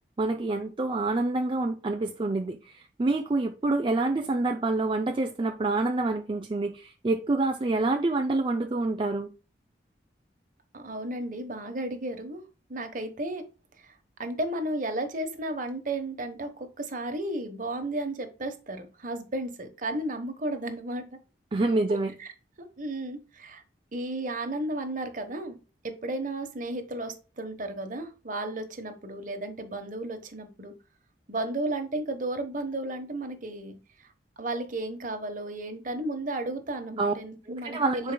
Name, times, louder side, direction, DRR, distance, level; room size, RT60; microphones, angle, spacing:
voice 1, 0.2-9.3 21.5-22.2 37.0-37.1 37.5-38.1, right 2 dB, 30° right, 0.4 m, -27 dB
voice 2, 10.7-12.4 12.7-13.4 13.8-13.9 14.2-21.0 21.9-22.3 22.8-23.6 23.9-25.6 25.8-30.7 31.3-33.7 34.4-38.1, right 1 dB, 45° right, 1.1 m, -33 dB
10.0 x 4.6 x 2.2 m
head